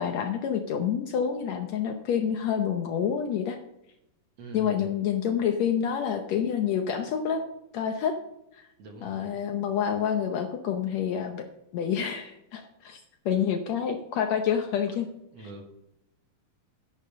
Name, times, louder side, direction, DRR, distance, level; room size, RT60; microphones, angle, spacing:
voice 1, 0.0-3.6 4.5-7.4 7.7-8.2 9.0-11.4 11.7-13.0 13.2-15.1, left 8 dB, 80° left, 5 dB, 1.5 m, -28 dB
voice 2, 4.4-4.9 8.8-9.3 14.9-15.0 15.3-15.6, right 2 dB, 55° right, 2 dB, 2.0 m, -43 dB
10.5 x 7.1 x 6.5 m, 0.85 s
omnidirectional pair, 4.1 m